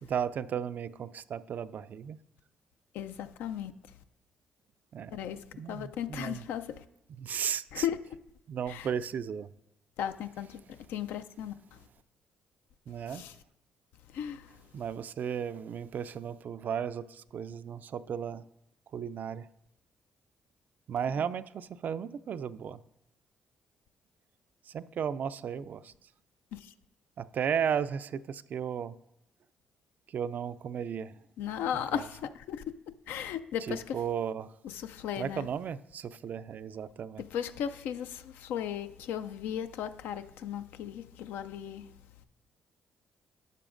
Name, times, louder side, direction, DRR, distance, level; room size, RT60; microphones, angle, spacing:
voice 1, 0.0-2.2 4.9-5.2 5.5-6.4 7.2-7.8 8.5-9.5 12.9-13.2 14.7-18.4 18.9-19.5 20.9-22.8 24.7-25.9 27.2-28.9 30.1-31.1 33.7-34.5 35.2-37.2, right 8 dB, 60° right, 0.3 m, -35 dB
voice 2, 2.9-3.7 5.1-6.8 7.7-8.0 8.7-8.9 10.0-11.8 13.1-13.4 14.1-14.6 21.2-21.3 26.5-26.7 31.4-32.6 33.1-34.0 34.6-35.5 37.2-41.9, left 9 dB, 80° left, 0.4 m, -36 dB
12.0 x 6.9 x 2.5 m
supercardioid pair, 65°, 3 cm